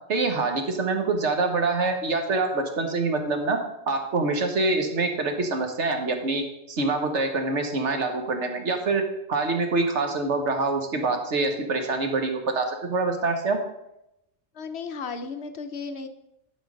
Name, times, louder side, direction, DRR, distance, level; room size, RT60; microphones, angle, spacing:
voice 1, 0.1-3.6 3.9-9.0 9.3-13.6, right 3 dB, 65° right, 5 dB, 1.4 m, -25 dB
voice 2, 14.5-16.1, left 5 dB, 60° left, 8 dB, 0.8 m, -34 dB
11.5 x 4.5 x 5.1 m, 0.86 s
omnidirectional pair, 1.3 m